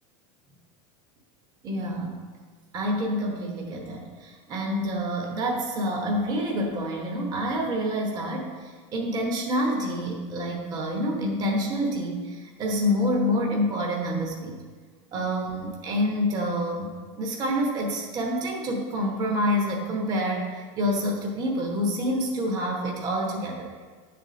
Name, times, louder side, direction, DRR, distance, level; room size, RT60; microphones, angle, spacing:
voice 1, 1.6-2.2 2.7-14.6 15.1-23.8, equal, 25° right, 0 dB, 1.0 m, -27 dB
10.0 x 4.2 x 5.1 m, 1.5 s
supercardioid pair, 160°, 16 cm